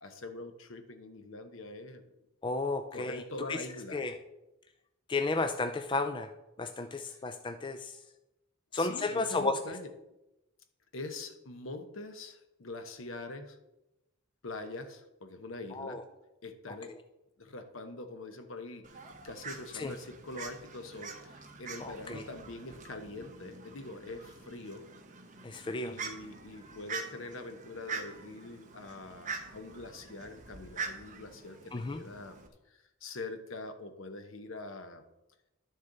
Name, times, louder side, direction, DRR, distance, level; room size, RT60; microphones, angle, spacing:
voice 1, 0.0-2.0 2.9-4.1 8.7-9.9 10.9-13.6 14.4-16.0 16.4-16.9 17.4-24.8 25.8-32.3 32.7-35.0, left 2 dB, 70° left, 8 dB, 1.0 m, -44 dB
voice 2, 2.4-3.7 3.9-4.2 5.1-6.3 6.6-8.0 8.7-9.6 15.7-16.0 16.7-17.0 19.7-19.9 21.8-22.2 25.4-26.0 31.7-32.0, left 3 dB, 25° left, 7 dB, 0.4 m, -33 dB
Fowl, 18.8-32.5, right 4 dB, 35° right, 1.0 m, -45 dB
11.5 x 6.4 x 3.9 m, 0.94 s
head